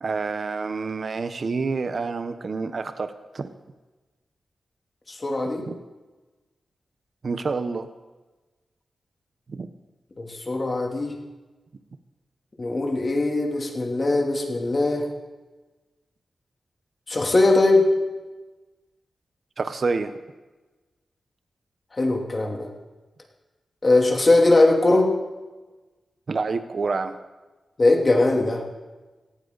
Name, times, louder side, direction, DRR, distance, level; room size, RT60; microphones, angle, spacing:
voice 1, 0.0-3.5 5.7-5.8 7.2-7.9 9.5-9.7 19.6-20.1 26.3-27.1, right 4 dB, 55° right, 9 dB, 0.9 m, -28 dB
voice 2, 5.1-5.6 10.2-11.2 12.6-15.1 17.1-17.9 21.9-22.7 23.8-25.1 27.8-28.6, left 2 dB, 35° left, 0 dB, 2.9 m, -20 dB
18.0 x 15.0 x 4.0 m, 1.2 s
wide cardioid pair, 85°, 0 cm